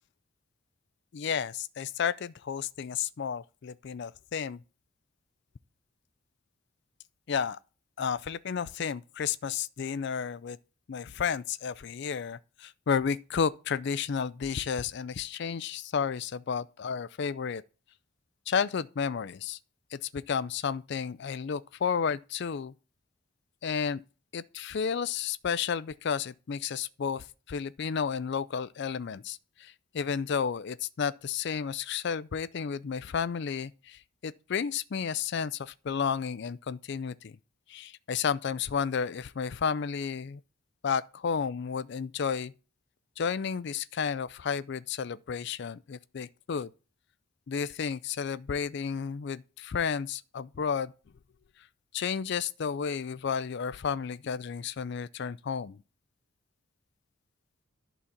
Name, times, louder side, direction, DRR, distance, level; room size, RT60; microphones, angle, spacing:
voice 1, 1.1-4.6 7.3-7.6 8.0-10.6 10.9-17.6 18.5-19.6 19.9-22.7 23.6-24.0 24.3-37.4 37.7-40.4 40.8-42.5 43.2-46.7 47.5-50.9 51.9-55.8, left 6 dB, 50° left, 0.4 m, -32 dB
11.5 x 4.0 x 7.1 m
head